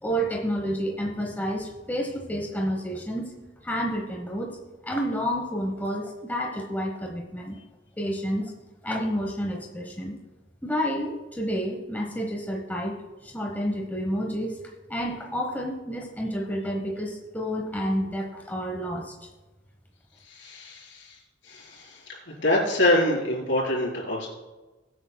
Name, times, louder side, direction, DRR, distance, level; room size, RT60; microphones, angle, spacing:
voice 1, 0.0-3.2 3.6-4.5 4.8-7.6 8.0-8.5 8.8-10.2 10.6-12.9 13.2-14.6 14.9-19.1, equal, 10° left, 1 dB, 1.1 m, -29 dB
voice 2, 20.3-21.1 21.4-24.3, left 1 dB, 70° left, -3 dB, 4.0 m, -25 dB
21.5 x 8.5 x 2.2 m, 1.1 s
head